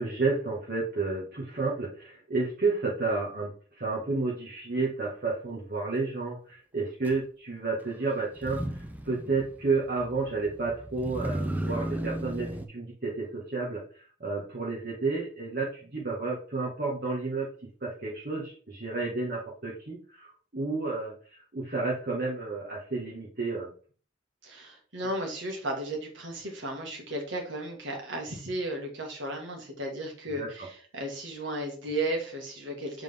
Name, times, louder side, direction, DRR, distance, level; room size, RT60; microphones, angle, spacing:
voice 1, 0.0-3.5 3.8-17.5 17.8-23.7 30.4-30.7, right 3 dB, 45° right, -5 dB, 1.4 m, -31 dB
Motor vehicle (road), 7.0-7.2 8.3-12.7, right 1 dB, 10° right, 0.5 m, -35 dB
voice 2, 24.4-33.0, right 1 dB, 70° right, 1 dB, 1.8 m, -34 dB
7.5 x 3.8 x 3.5 m, 0.40 s
head